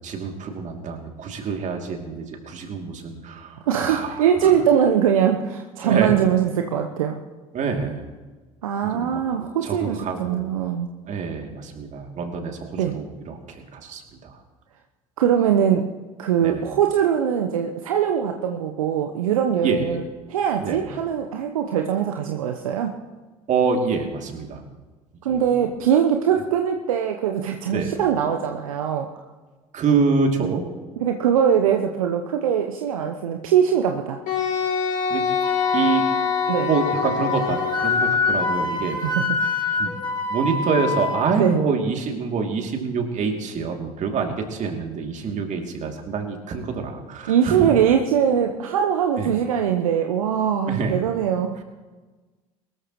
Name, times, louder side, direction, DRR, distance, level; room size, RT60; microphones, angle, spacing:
voice 1, 0.0-4.6 5.8-6.2 7.5-8.0 8.9-10.5 11.1-14.4 16.4-16.7 19.6-20.0 20.6-20.9 23.5-24.6 25.3-25.4 27.7-28.0 29.7-30.6 35.1-35.2 35.7-36.0 36.6-39.0 39.7-47.7 49.2-49.3 50.7-51.0, right 5 dB, 45° right, 3 dB, 2.8 m, -26 dB
voice 2, 3.7-7.2 8.6-10.9 12.8-12.9 15.2-15.9 16.2-20.0 20.3-22.9 25.2-29.1 31.0-34.2 36.5-36.7 39.0-39.3 41.3-41.6 47.3-51.5, right 8 dB, 75° right, 4 dB, 0.9 m, -21 dB
Wind instrument woodwind instrument, 34.3-38.5, left 6 dB, 50° left, 5.1 m, -25 dB
Wind instrument woodwind instrument 2, 35.4-41.2, left 4 dB, 25° left, 3.9 m, -26 dB
22.5 x 13.5 x 3.1 m, 1.3 s
figure-of-eight pair, 65°, 18 cm